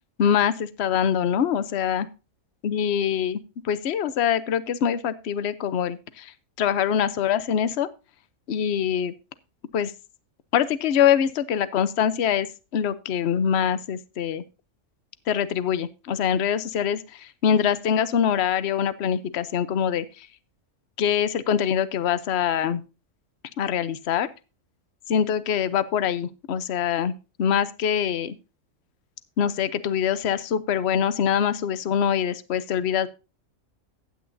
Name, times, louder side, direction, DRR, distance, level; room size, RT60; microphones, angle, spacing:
voice 1, 0.2-2.1 2.6-3.4 3.6-6.3 6.6-7.9 8.5-9.1 9.7-9.9 10.5-12.5 12.7-14.4 15.3-20.3 21.0-22.8 23.6-24.3 25.1-27.1 27.4-28.3 29.4-33.1, left 8 dB, 55° left, 15 dB, 0.9 m, -24 dB
15.5 x 9.3 x 2.6 m, 0.30 s
omnidirectional pair, 1.4 m